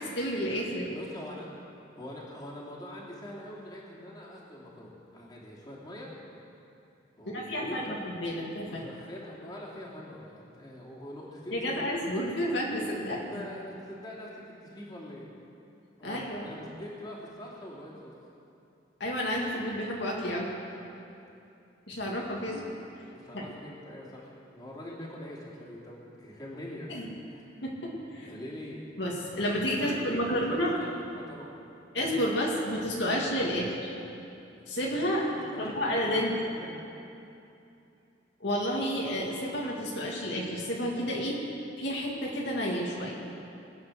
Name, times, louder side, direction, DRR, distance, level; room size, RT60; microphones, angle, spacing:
voice 1, 0.0-0.9 7.3-8.8 11.5-13.4 16.0-16.5 19.0-20.5 21.9-22.6 23.3-23.4 26.9-27.1 27.6-28.3 29.0-30.7 31.9-33.9 34.7-35.3 35.6-36.3 38.4-41.4 41.8-43.1, equal, 65° left, -3 dB, 2.3 m, -30 dB
voice 2, 0.9-1.5 2.0-6.1 7.2-8.0 8.6-11.7 13.1-15.3 16.0-18.1 23.1-26.9 27.2-27.4 28.2-28.9 29.6-31.5 35.2-36.8, left 1 dB, 20° left, -6 dB, 3.0 m, -43 dB
22.0 x 9.4 x 6.5 m, 2.7 s
head